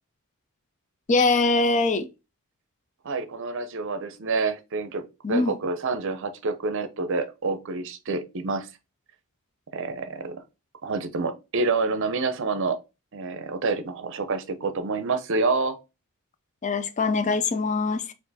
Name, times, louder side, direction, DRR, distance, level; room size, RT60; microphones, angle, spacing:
voice 1, 1.1-2.1 5.2-5.5 16.6-18.1, left 3 dB, 35° left, 0.4 m, -23 dB
voice 2, 3.0-5.0 5.3-8.7 9.7-10.4 10.8-12.8 13.1-15.8, right 3 dB, 60° right, 0.6 m, -28 dB
4.5 x 2.5 x 4.0 m
head